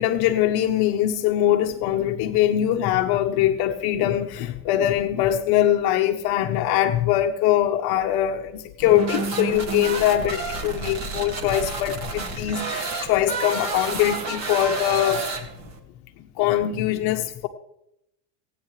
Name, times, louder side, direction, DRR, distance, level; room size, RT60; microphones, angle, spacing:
voice 1, 0.0-15.2 16.2-17.5, left 12 dB, 50° left, 5 dB, 1.0 m, -22 dB
sound 1, 8.8-15.8, right 3 dB, 35° right, 2.1 m, -30 dB
28.0 x 9.5 x 3.3 m, 0.83 s
supercardioid pair, 130°, 48 cm